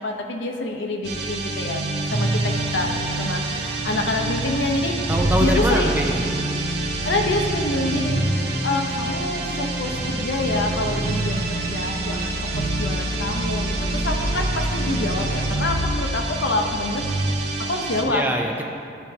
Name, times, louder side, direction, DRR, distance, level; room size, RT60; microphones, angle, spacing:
voice 1, 0.0-5.0 5.4-6.0 7.0-8.2 8.6-17.1 17.6-18.2 18.6-18.7, left 2 dB, 65° left, 3 dB, 0.7 m, -27 dB
sound 1, 1.0-18.0, right 2 dB, 55° right, 0.6 m, -25 dB
voice 2, 5.1-6.3 18.1-18.7, right 1 dB, 10° right, 1 dB, 0.4 m, -24 dB
12.0 x 4.4 x 2.8 m, 2.4 s
head